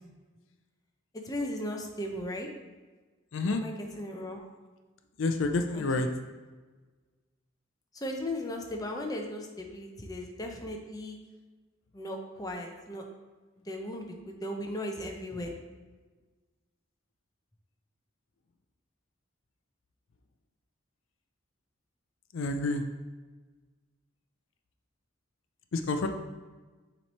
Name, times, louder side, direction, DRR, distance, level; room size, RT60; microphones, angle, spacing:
voice 1, 1.1-2.5 3.5-4.5 7.9-11.2 11.9-13.0 13.7-15.5, left 1 dB, 20° left, 2 dB, 0.6 m, -37 dB
voice 2, 5.2-6.1 22.3-22.8 25.7-26.1, left 2 dB, 70° left, 6 dB, 0.5 m, -28 dB
7.1 x 3.1 x 4.2 m, 1.3 s
head